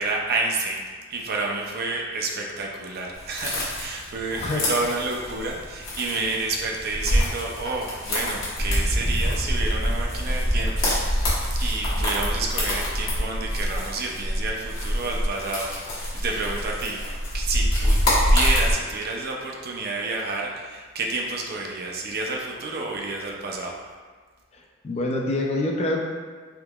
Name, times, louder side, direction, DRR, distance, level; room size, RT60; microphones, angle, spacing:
voice 1, 0.0-15.7 16.0-17.0 17.3-18.0 18.2-23.8, right 3 dB, 50° right, 0 dB, 0.4 m, -29 dB
sound 1, 3.1-18.7, equal, 85° left, 1.1 m, -27 dB
Mechanical fan, 8.6-13.9, equal, ahead, 0.7 m, -26 dB
voice 2, 24.5-26.0, left 2 dB, 30° left, 0 dB, 0.4 m, -26 dB
3.5 x 2.9 x 2.3 m, 1.5 s
head